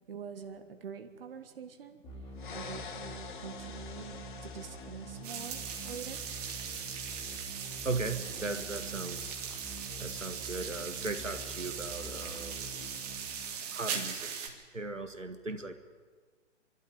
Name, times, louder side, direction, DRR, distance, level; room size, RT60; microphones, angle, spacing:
voice 1, 0.1-2.0 2.5-4.1 4.4-5.6 5.8-6.2, right 6 dB, 50° right, 7 dB, 1.6 m, -45 dB
sound 1, 2.0-14.0, right 2 dB, 15° left, 3.2 m, -47 dB
sound 2, 2.4-6.3, left 6 dB, 40° left, 1.6 m, -47 dB
sound 3, 5.2-14.5, right 7 dB, 30° right, 2.4 m, -39 dB
voice 2, 7.8-9.2 10.0-12.7 13.7-14.3 14.7-15.7, right 3 dB, 85° right, 7 dB, 1.8 m, -37 dB
26.0 x 12.5 x 10.0 m, 1.5 s
figure-of-eight pair, 130°, 37 cm